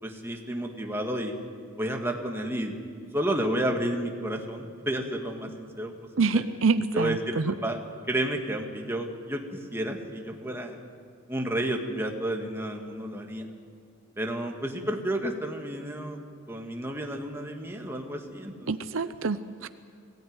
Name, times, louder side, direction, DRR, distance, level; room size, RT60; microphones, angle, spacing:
voice 1, 0.0-1.3 1.8-2.8 3.1-5.9 6.3-6.4 6.9-7.8 8.1-10.8 11.3-13.5 14.2-16.2 16.5-18.7, right 1 dB, 10° right, 2 dB, 2.0 m, -31 dB
voice 2, 6.2-7.5 18.7-19.7, right 4 dB, 70° right, 12 dB, 0.7 m, -26 dB
22.0 x 16.5 x 9.7 m, 2.1 s
head